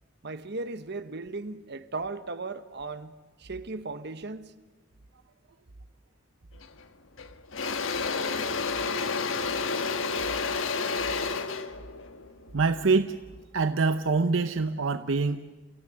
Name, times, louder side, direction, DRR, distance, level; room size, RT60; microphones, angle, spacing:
voice 1, 0.2-3.1 3.4-4.5, right 3 dB, 60° right, 1.3 m, -36 dB
Engine / Drill, 6.6-6.8 7.2-13.3, left 4 dB, 80° left, 1.4 m, -30 dB
voice 2, 12.5-13.2 13.5-15.4, right 4 dB, 75° right, 0.8 m, -25 dB
29.5 x 16.0 x 9.5 m
head